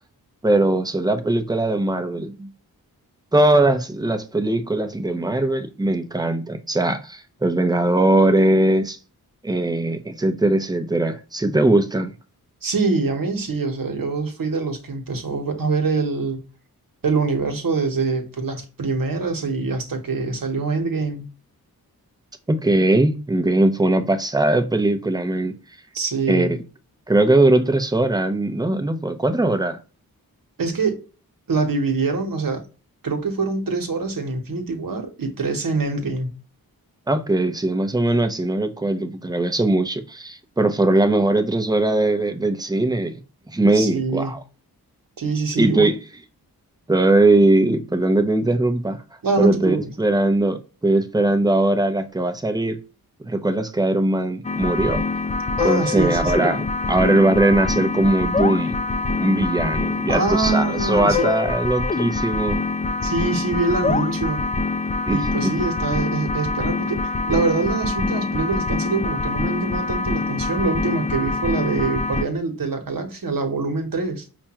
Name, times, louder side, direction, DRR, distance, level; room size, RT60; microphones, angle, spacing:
voice 1, 0.4-2.5 3.3-9.0 9.4-12.1 22.5-25.5 26.3-26.6 27.1-29.8 37.1-43.1 43.5-44.4 45.6-45.9 46.9-49.0 49.4-52.8 53.2-55.0 55.6-58.7 59.2-62.6 65.1-65.2 65.4-65.5, right 2 dB, 10° right, 0.7 m, -20 dB
voice 2, 12.6-16.4 17.0-21.3 25.9-26.6 30.6-31.0 31.5-32.6 33.0-36.4 43.7-44.3 45.2-45.9 49.2-49.9 55.6-56.4 60.1-61.3 63.0-64.4 65.1-74.3, right 4 dB, 65° right, 1.1 m, -24 dB
sound 1, 54.4-72.2, left 3 dB, 20° left, 0.4 m, -25 dB
5.0 x 2.3 x 2.9 m
cardioid pair, 55°, 37 cm